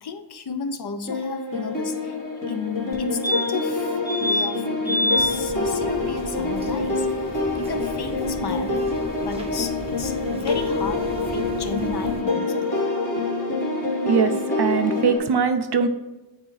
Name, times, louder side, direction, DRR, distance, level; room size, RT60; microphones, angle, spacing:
voice 1, 0.0-2.2 2.5-7.1 7.5-8.8 9.2-12.8, left 5 dB, 65° left, 8 dB, 0.6 m, -33 dB
sound 1, 1.1-15.2, left 3 dB, 45° left, 1.5 m, -26 dB
sound 2, 2.9-3.0 3.2-3.7 4.1-4.5 4.9-5.3 7.7-7.8 8.0-8.1, left 1 dB, 20° left, 1.1 m, -24 dB
sound 3, 5.1-12.2, right 1 dB, 15° right, 0.7 m, -39 dB
voice 2, 14.6-15.9, right 6 dB, 65° right, 8 dB, 0.5 m, -21 dB
8.6 x 3.5 x 3.2 m, 1.0 s
wide cardioid pair, 55°, 43 cm